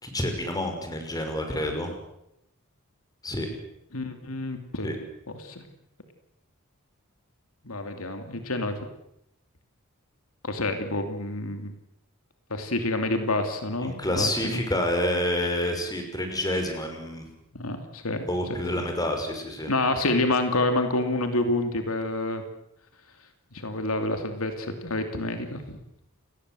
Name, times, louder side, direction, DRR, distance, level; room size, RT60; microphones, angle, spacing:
voice 1, 0.0-1.9 3.2-3.5 4.8-5.0 13.8-17.2 18.3-19.7, left 1 dB, 20° left, 4 dB, 5.7 m, -28 dB
voice 2, 3.9-4.9 5.3-5.6 7.6-8.7 10.4-11.7 12.5-14.6 17.5-18.2 18.8-18.9 19.7-22.4 23.5-25.8, left 2 dB, 80° left, 7 dB, 2.9 m, -28 dB
29.0 x 20.0 x 7.9 m, 0.80 s
head